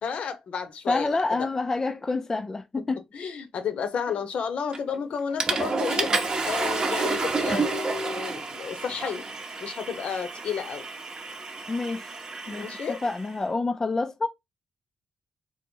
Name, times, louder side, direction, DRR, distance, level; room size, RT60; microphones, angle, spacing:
voice 1, 0.0-1.2 3.1-6.1 6.4-9.2 9.6-10.9 12.5-13.0, left 6 dB, 65° left, 0.8 m, -32 dB
voice 2, 0.9-3.0 11.7-12.1 12.5-14.3, left 3 dB, 20° left, 0.3 m, -28 dB
Water / Toilet flush, 4.7-5.0 5.4-13.3, right 3 dB, 35° right, 0.7 m, -30 dB
4.0 x 2.1 x 4.4 m
wide cardioid pair, 130°, 2 cm